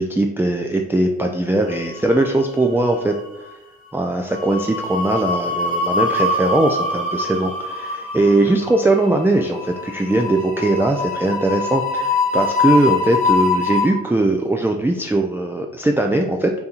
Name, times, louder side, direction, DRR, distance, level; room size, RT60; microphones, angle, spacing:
voice 1, 0.0-3.1 3.9-16.5, right 2 dB, 5° right, 3 dB, 0.4 m, -20 dB
sound 1, 1.8-2.6 2.9-3.1 4.3-13.9, left 3 dB, 45° right, 1.4 m, -23 dB
3.4 x 2.7 x 4.2 m, 0.95 s
supercardioid pair, 50°, 31 cm